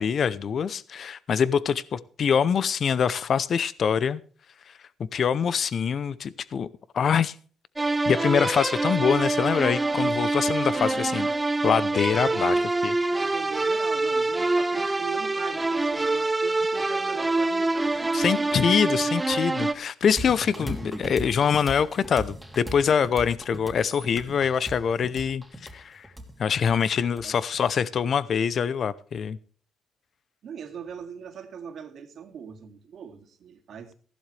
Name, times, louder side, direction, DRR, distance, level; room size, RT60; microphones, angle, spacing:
voice 1, 0.0-4.2 5.1-6.7 6.9-7.3 8.1-11.3 11.6-12.5 12.8-12.9 18.1-25.4 25.7-26.1 26.4-29.4, left 7 dB, 55° left, 0.7 m, -24 dB
sound 1, 7.8-19.7, right 2 dB, 15° right, 1.0 m, -25 dB
voice 2, 10.7-11.2 12.3-12.7 13.2-18.6 27.2-27.3 30.4-33.9, right 7 dB, 65° right, 2.3 m, -40 dB
sound 2, 20.2-27.7, equal, ahead, 2.9 m, -38 dB
15.5 x 11.5 x 3.3 m
cardioid pair, 90°, 0 cm